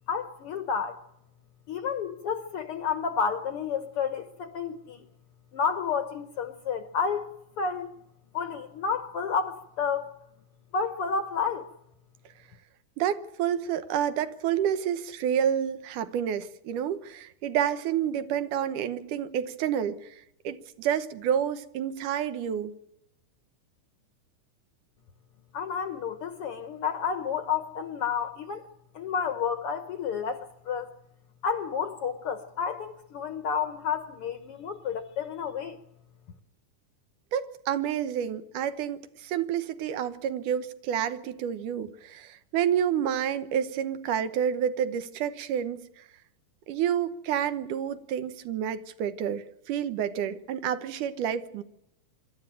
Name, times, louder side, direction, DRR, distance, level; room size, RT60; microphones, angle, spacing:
voice 1, 0.1-1.0 1.7-5.1 5.5-7.9 8.3-10.1 10.7-11.7 25.5-28.6 28.9-30.9 31.4-35.8, left 6 dB, 65° left, 1.5 m, -30 dB
voice 2, 13.0-20.1 20.4-22.7 37.3-46.0 46.7-51.6, right 9 dB, 80° right, 2.6 m, -29 dB
25.5 x 12.5 x 8.9 m
omnidirectional pair, 3.6 m